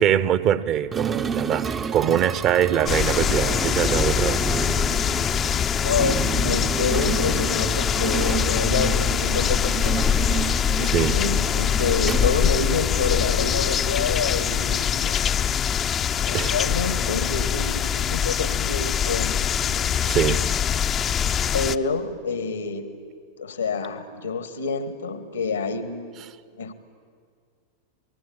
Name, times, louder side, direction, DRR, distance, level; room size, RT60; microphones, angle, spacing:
voice 1, 0.0-4.4 4.7-4.8 10.9-11.2 16.3-16.5 20.1-20.5, right 10 dB, 35° right, 15 dB, 1.0 m, -23 dB
sound 1, 0.9-13.2, right 6 dB, 20° right, 0.8 m, -31 dB
sound 2, 2.9-21.8, left 8 dB, 25° left, 0.6 m, -23 dB
voice 2, 5.8-10.1 10.8-15.3 16.2-20.2 21.5-23.0 23.4-26.2 26.5-26.7, left 4 dB, 80° left, 12 dB, 1.5 m, -28 dB
28.0 x 19.5 x 8.8 m, 2.2 s
figure-of-eight pair, 90°, 0 cm